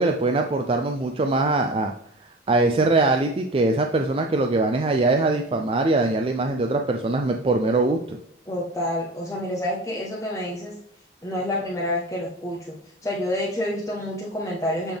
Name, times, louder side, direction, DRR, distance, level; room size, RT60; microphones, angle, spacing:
voice 1, 0.0-1.9 2.5-8.2, right 2 dB, 30° right, 4 dB, 0.4 m, -22 dB
voice 2, 8.5-10.7 11.2-12.8 13.0-15.0, left 1 dB, 15° left, -4 dB, 0.8 m, -28 dB
8.1 x 3.4 x 3.5 m, 0.69 s
head